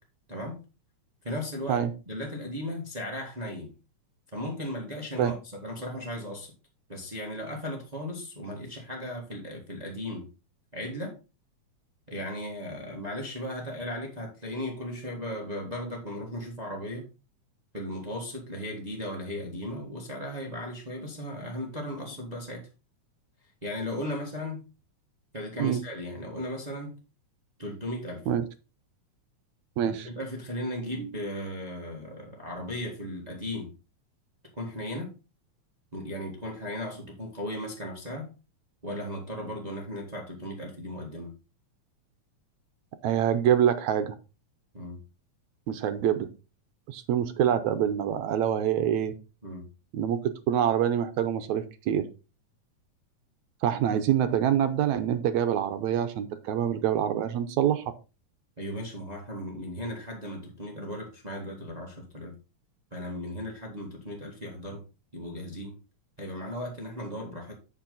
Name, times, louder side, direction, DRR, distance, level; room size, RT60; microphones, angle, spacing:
voice 1, 0.3-0.6 1.2-3.7 4.3-6.5 6.9-10.3 10.7-11.2 12.1-17.1 17.7-22.7 23.6-24.6 25.3-27.0 27.6-28.2 30.0-33.7 34.5-35.1 35.9-38.3 38.8-41.3 44.7-45.0 49.4-49.7 58.6-62.4 62.9-64.8 65.1-65.7 66.2-67.6, left 1 dB, 20° right, 1 dB, 1.4 m, -36 dB
voice 2, 29.8-30.1 43.0-44.1 45.7-46.3 46.9-49.1 49.9-52.1 53.6-57.8, right 9 dB, 75° right, 10 dB, 2.0 m, -25 dB
8.8 x 6.3 x 3.9 m, 0.31 s
omnidirectional pair, 3.4 m